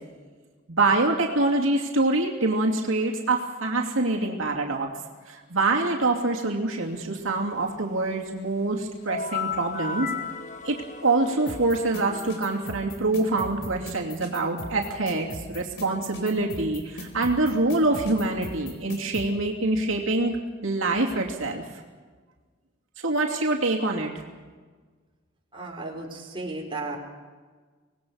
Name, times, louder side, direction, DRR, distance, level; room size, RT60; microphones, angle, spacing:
voice 1, 0.7-4.9 5.3-10.1 10.6-10.8 11.0-20.4 20.6-21.6 23.0-24.1, right 2 dB, 85° right, 0 dB, 2.8 m, -25 dB
sound 1, 9.1-12.7, left 5 dB, 40° left, 1.3 m, -34 dB
sound 2, 11.5-19.3, left 1 dB, 80° left, 4.0 m, -38 dB
voice 2, 25.5-27.0, right 2 dB, 25° right, -1 dB, 4.5 m, -34 dB
25.5 x 19.0 x 6.5 m, 1.4 s
head